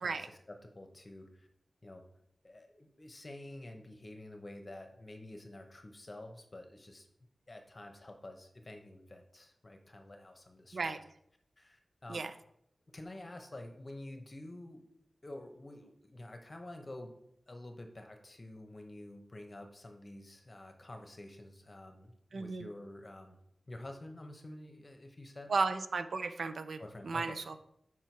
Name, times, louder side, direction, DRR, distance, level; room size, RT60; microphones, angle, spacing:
voice 1, 0.0-1.5 1.8-2.0 2.4-7.1 7.5-11.0 11.6-12.3 12.9-14.8 15.2-17.1 17.5-23.4 23.7-25.5 26.8-27.6, left 1 dB, 30° left, 4 dB, 0.9 m, -49 dB
voice 2, 22.3-22.7 25.5-27.6, right 4 dB, 80° right, 10 dB, 0.4 m, -35 dB
6.0 x 4.5 x 4.6 m, 0.74 s
wide cardioid pair, 120°, 0 cm